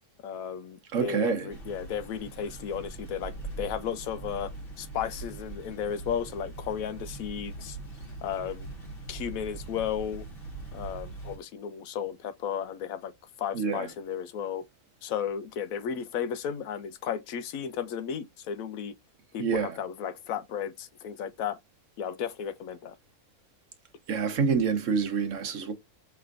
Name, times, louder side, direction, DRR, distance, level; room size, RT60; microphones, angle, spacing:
voice 1, 0.2-4.5 4.8-7.8 8.2-8.7 9.1-10.2 10.7-13.1 13.4-14.7 15.0-18.9 19.3-21.6 22.0-22.9, left 8 dB, 75° left, 1.0 m, -34 dB
voice 2, 0.9-1.5 13.5-13.9 19.4-19.8 24.1-25.7, right 6 dB, 60° right, 1.1 m, -27 dB
sound 1, 1.5-11.4, right 3 dB, 40° left, 1.3 m, -41 dB
5.0 x 3.3 x 2.4 m
omnidirectional pair, 1.5 m